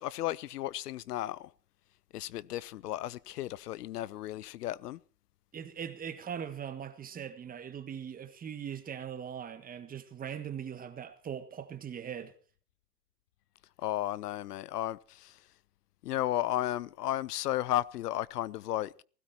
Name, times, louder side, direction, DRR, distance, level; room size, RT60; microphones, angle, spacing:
voice 1, 0.0-1.5 2.1-5.0 13.8-15.4 16.0-19.0, left 14 dB, 75° left, 0.6 m, -34 dB
voice 2, 5.5-12.3, right 8 dB, 20° right, 1.6 m, -40 dB
16.0 x 16.0 x 4.4 m
hypercardioid pair, 115°, 48 cm